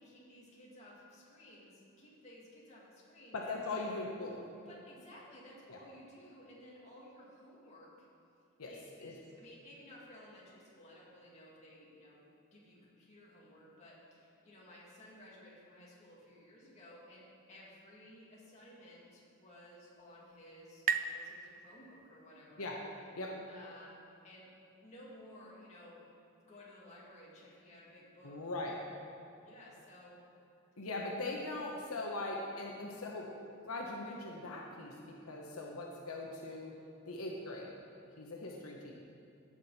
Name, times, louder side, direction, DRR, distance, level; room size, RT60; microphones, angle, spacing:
voice 1, 0.0-3.4 3.7-3.8 4.7-8.1 8.6-22.7 23.5-24.0 24.2-24.5 24.8-26.1 26.5-28.4 29.4-30.2, left 1 dB, 35° left, -6 dB, 2.6 m, -56 dB
voice 2, 3.3-4.4 5.7-5.8 8.6-8.7 9.0-9.1 22.6-22.8 23.1-23.3 28.2-28.7 30.8-33.3 33.6-36.7 37.1-37.7 38.2-38.9, left 2 dB, 85° left, -1 dB, 1.1 m, -40 dB
sound 1, 19.4-22.8, right 6 dB, 40° right, 0.4 m, -40 dB
15.5 x 6.3 x 4.3 m, 2.7 s
head